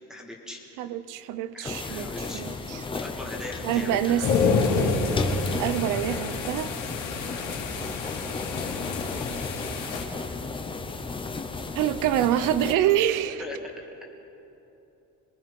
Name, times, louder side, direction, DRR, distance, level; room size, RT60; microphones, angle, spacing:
voice 1, 0.1-0.6 1.5-2.4 2.9-4.2 7.3-7.5 13.4-13.6, left 2 dB, ahead, -1 dB, 1.9 m, -39 dB
voice 2, 0.8-2.8 3.6-4.3 5.6-6.7 11.7-13.4, right 11 dB, 65° right, 13 dB, 0.9 m, -26 dB
sound 1, 1.6-12.7, left 3 dB, 15° left, 0.8 m, -34 dB
sound 2, 4.2-10.0, left 4 dB, 70° left, 3.6 m, -28 dB
26.0 x 22.0 x 5.5 m, 3.0 s
cardioid pair, 180°, 33 cm